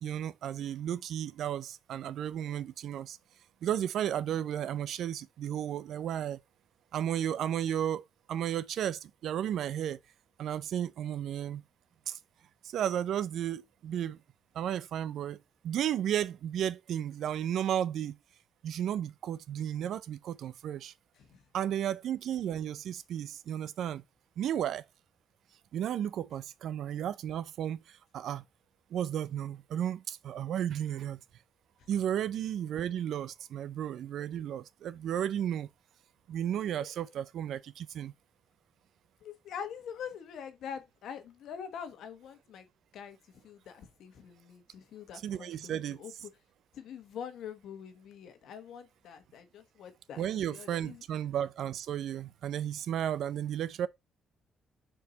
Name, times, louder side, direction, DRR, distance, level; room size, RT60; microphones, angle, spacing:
voice 1, 0.0-3.2 3.6-6.4 6.9-10.0 10.4-11.6 12.1-12.2 12.6-14.2 14.5-15.4 15.6-18.1 18.6-20.9 21.5-24.0 24.4-24.8 25.7-28.4 28.9-31.2 31.9-35.7 36.3-38.1 45.2-46.0 50.2-53.9, right 10 dB, 75° right, 0.4 m, -33 dB
voice 2, 21.1-21.5 31.8-31.9 36.8-37.1 39.2-42.7 42.9-43.2 43.4-46.1 46.7-51.0, left 7 dB, 75° left, 1.2 m, -44 dB
4.5 x 4.2 x 5.0 m
cardioid pair, 90°, 0 cm